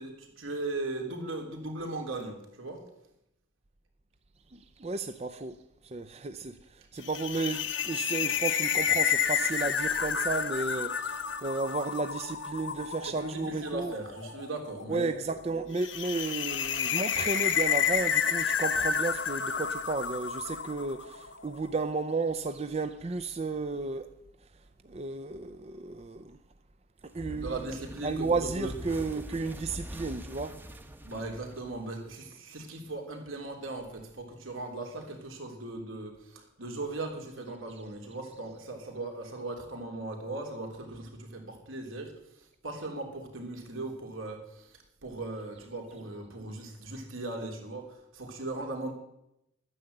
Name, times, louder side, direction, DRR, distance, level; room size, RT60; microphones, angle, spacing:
voice 1, 0.0-2.9 13.0-15.2 27.4-28.8 31.0-48.9, right 2 dB, 75° right, 3.3 m, -38 dB
voice 2, 4.5-13.9 14.9-24.1 24.8-26.4 27.0-27.5 28.0-30.6, right 3 dB, 30° right, 0.5 m, -33 dB
sound 1, 7.0-21.4, left 7 dB, 60° left, 1.0 m, -30 dB
sound 2, 27.1-32.3, equal, 10° right, 0.9 m, -43 dB
12.5 x 9.8 x 7.8 m
head